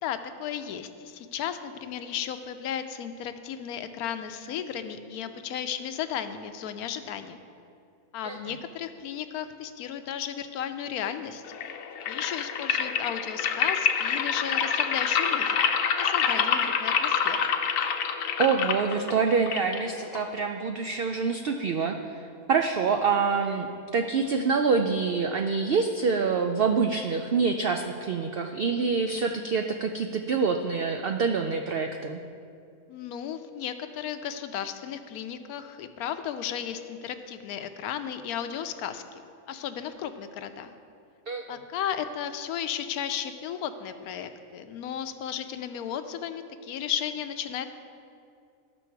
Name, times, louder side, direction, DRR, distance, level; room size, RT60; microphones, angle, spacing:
voice 1, 0.0-7.4 8.1-11.4 12.1-15.6 16.0-17.4 32.9-39.0 39.5-40.7 41.5-47.7, left 9 dB, 85° left, 9 dB, 1.1 m, -34 dB
sound 1, 11.5-20.5, left 7 dB, 70° left, 0.9 m, -27 dB
voice 2, 18.4-23.7 23.9-32.2 41.3-41.6, right 5 dB, 85° right, 5 dB, 0.5 m, -26 dB
13.0 x 6.1 x 4.6 m, 2.4 s
omnidirectional pair, 1.5 m